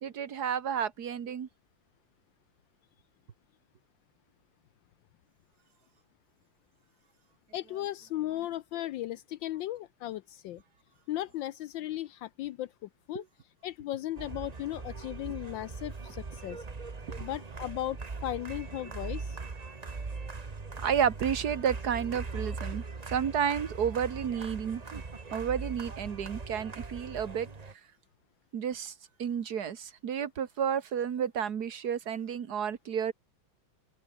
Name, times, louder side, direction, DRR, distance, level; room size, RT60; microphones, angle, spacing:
voice 1, 0.0-1.5 13.2-13.3 20.8-25.0 25.3-27.5 28.5-28.9 29.2-33.1, right 8 dB, 50° right, 1.8 m, -31 dB
voice 2, 7.5-10.6 11.1-13.2 13.6-16.6 17.1-19.4, left 14 dB, 75° left, 1.3 m, -36 dB
sound 1, 14.2-27.7, right 4 dB, 25° right, 1.1 m, -40 dB
open air
omnidirectional pair, 2.3 m